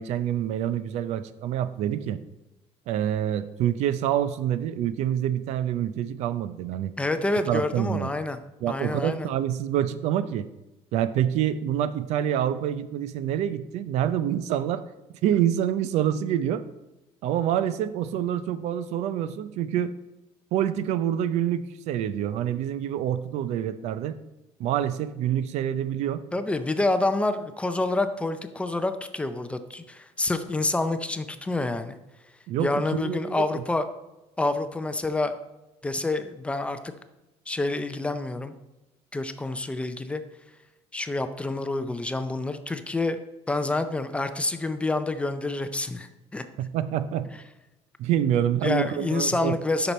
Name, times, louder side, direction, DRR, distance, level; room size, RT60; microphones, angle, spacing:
voice 1, 0.0-2.2 2.9-6.9 7.5-8.1 8.6-10.5 10.9-14.8 15.2-16.6 17.2-19.9 20.5-24.2 24.6-26.2 32.5-33.6 46.6-47.3 48.0-49.5, right 10 dB, 75° right, 14 dB, 0.5 m, -26 dB
voice 2, 7.0-8.4 8.7-9.3 26.3-32.0 32.6-33.8 34.4-35.3 35.8-36.9 37.5-38.5 39.1-40.2 40.9-43.2 43.5-46.4 48.6-49.9, left 2 dB, 10° left, 9 dB, 0.4 m, -27 dB
8.4 x 6.0 x 4.1 m, 1.0 s
cardioid pair, 150°, 12 cm